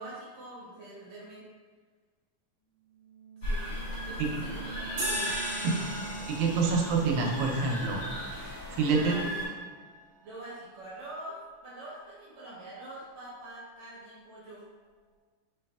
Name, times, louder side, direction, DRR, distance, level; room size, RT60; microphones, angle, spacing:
voice 1, 0.0-1.4 3.4-3.6 4.0-5.8 8.9-9.5 10.2-14.6, right 1 dB, 65° right, -7 dB, 2.0 m, -44 dB
sound 1, 2.7-9.0, right 4 dB, 80° left, 2.1 m, -45 dB
sound 2, 3.4-9.5, left 1 dB, 45° left, 1.4 m, -37 dB
sound 3, 5.0-9.9, right 1 dB, 45° right, 2.0 m, -40 dB
voice 2, 6.3-8.0 8.7-9.1, right 4 dB, 90° right, 1 dB, 2.4 m, -27 dB
5.9 x 3.2 x 2.3 m, 1.5 s
omnidirectional pair, 3.9 m